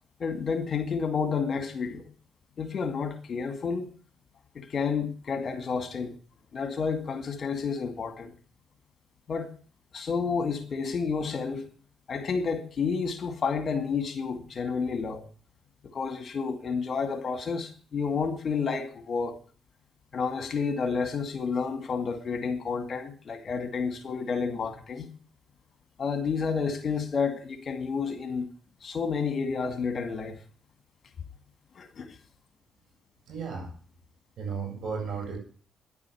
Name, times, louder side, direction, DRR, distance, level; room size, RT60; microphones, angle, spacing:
voice 1, 0.2-2.0 2.6-3.9 4.5-6.1 6.5-8.3 9.3-9.5 9.9-11.6 12.1-15.2 15.8-19.4 20.1-25.1 26.0-28.5 28.8-30.4 31.8-32.2, left 5 dB, 50° left, 2.2 m, -30 dB
voice 2, 33.3-33.7 34.4-35.4, right 5 dB, 70° right, 7.5 m, -34 dB
10.5 x 8.6 x 8.5 m
cardioid pair, 70°, 0 cm